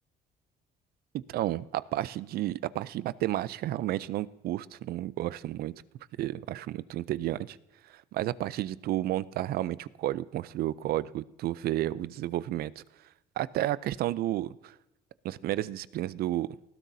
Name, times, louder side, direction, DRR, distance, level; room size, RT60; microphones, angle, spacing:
voice 1, 1.3-5.7 6.2-7.6 8.1-12.7 13.4-14.5 15.2-16.5, right 14 dB, 65° right, 18 dB, 0.5 m, -31 dB
19.0 x 12.0 x 2.7 m, 0.98 s
cardioid pair, 110°, 17 cm